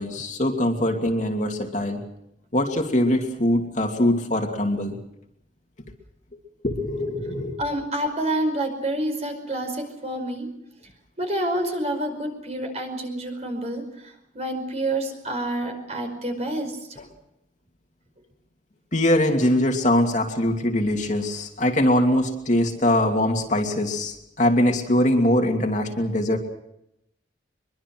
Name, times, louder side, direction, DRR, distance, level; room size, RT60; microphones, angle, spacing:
voice 1, 0.0-2.0 2.5-5.0 6.6-7.6 18.9-26.4, left 1 dB, 40° left, 2 dB, 2.7 m, -22 dB
voice 2, 7.6-10.5 11.2-17.0, right 1 dB, 35° right, 5 dB, 5.2 m, -28 dB
24.0 x 23.0 x 6.1 m, 0.81 s
head